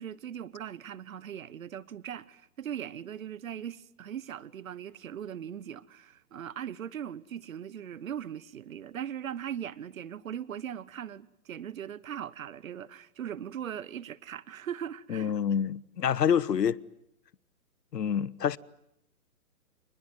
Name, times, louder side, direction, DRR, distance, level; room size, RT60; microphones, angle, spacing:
voice 1, 0.0-15.3, right 9 dB, 60° right, 1.1 m, -39 dB
voice 2, 15.1-16.8 17.9-18.6, left 8 dB, 90° left, 1.1 m, -27 dB
27.5 x 21.0 x 9.3 m
hypercardioid pair, 165°, 47 cm